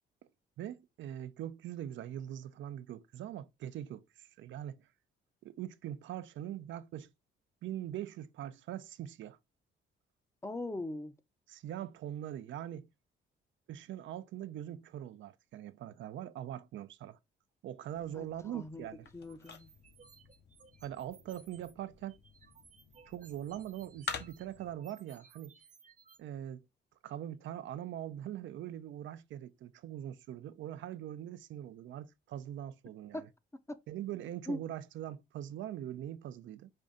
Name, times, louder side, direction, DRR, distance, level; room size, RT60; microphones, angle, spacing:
voice 1, 0.6-4.9 5.4-7.1 7.6-9.4 11.5-12.9 13.7-17.2 17.6-19.1 20.8-22.2 23.1-25.5 26.2-26.6 27.0-33.3 33.9-36.7, right 11 dB, 70° right, 0.5 m, -42 dB
voice 2, 10.4-11.1 18.1-18.3 18.5-18.9 19.1-19.7 33.1-33.2 33.7-33.8 34.5-34.6, left 1 dB, 15° left, 0.6 m, -39 dB
sound 1, 17.9-24.7, left 5 dB, 60° left, 1.0 m, -48 dB
sound 2, 19.2-21.7 22.1-26.2, right 6 dB, 40° right, 0.8 m, -61 dB
5.3 x 2.5 x 3.6 m
cardioid pair, 90°, 20 cm